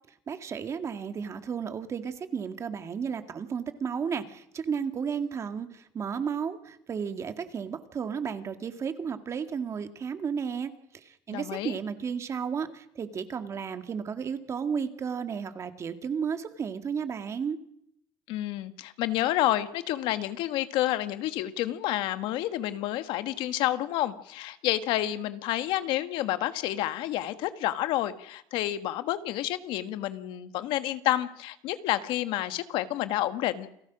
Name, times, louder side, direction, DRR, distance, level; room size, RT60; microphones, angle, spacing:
voice 1, 0.3-17.6, right 6 dB, 35° right, 8 dB, 2.0 m, -33 dB
voice 2, 11.3-11.8 18.3-33.8, left 14 dB, 75° left, 11 dB, 1.5 m, -29 dB
29.0 x 18.5 x 6.2 m, 0.73 s
cardioid pair, 125°, 8 cm